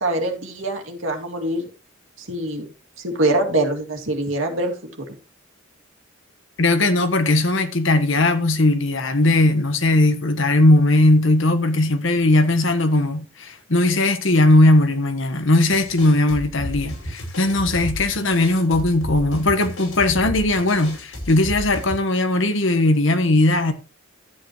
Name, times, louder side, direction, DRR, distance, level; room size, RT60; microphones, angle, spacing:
voice 1, 0.0-1.6 2.2-2.6 3.0-5.0, right 2 dB, 70° right, 2.5 m, -24 dB
voice 2, 6.6-23.7, left 2 dB, 65° left, 1.3 m, -18 dB
sound 1, 15.7-22.0, left 1 dB, 85° left, 5.2 m, -32 dB
12.5 x 8.9 x 3.1 m
head